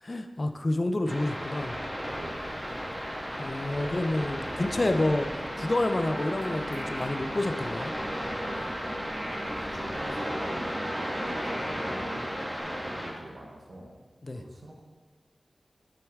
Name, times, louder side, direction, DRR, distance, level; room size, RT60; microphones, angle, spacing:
voice 1, 0.0-1.8 3.4-7.9 14.2-14.4, left 2 dB, 40° left, 7 dB, 0.5 m, -29 dB
sound 1, 1.1-13.1, equal, 15° right, 1.6 m, -34 dB
sound 2, 2.1-10.2, left 1 dB, 20° left, 1.2 m, -52 dB
voice 2, 2.1-2.7 9.3-13.9 14.3-14.8, right 1 dB, 65° right, 0 dB, 1.2 m, -45 dB
sound 3, 5.5-12.6, equal, 30° right, 1.3 m, -41 dB
8.0 x 6.2 x 3.6 m, 1.4 s
wide cardioid pair, 70°, 0 cm